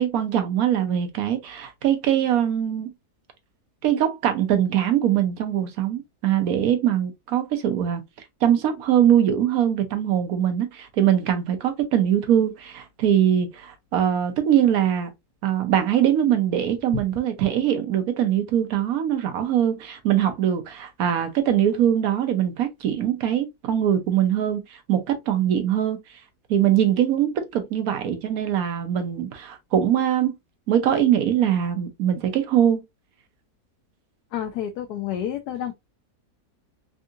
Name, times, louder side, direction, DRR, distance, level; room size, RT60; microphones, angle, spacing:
voice 1, 0.0-2.9 3.8-8.0 8.4-15.1 15.4-26.0 26.5-30.4 30.7-32.8, right 10 dB, 70° right, 1.1 m, -22 dB
voice 2, 34.3-35.7, left 10 dB, 80° left, 1.1 m, -29 dB
3.6 x 2.7 x 2.4 m
omnidirectional pair, 1.7 m